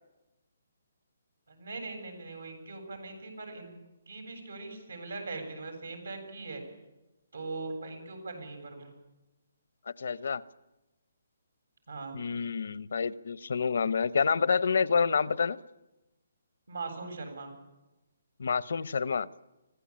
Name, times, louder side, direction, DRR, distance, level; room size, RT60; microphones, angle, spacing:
voice 1, 1.5-3.8 4.1-6.6 7.3-8.9 11.9-12.2 16.7-17.5, right 3 dB, 90° right, 7.9 m, -40 dB
voice 2, 10.0-10.4 12.1-15.6 18.4-19.3, left 5 dB, 70° left, 0.8 m, -28 dB
24.5 x 16.5 x 8.8 m
hypercardioid pair, 165°, 0 cm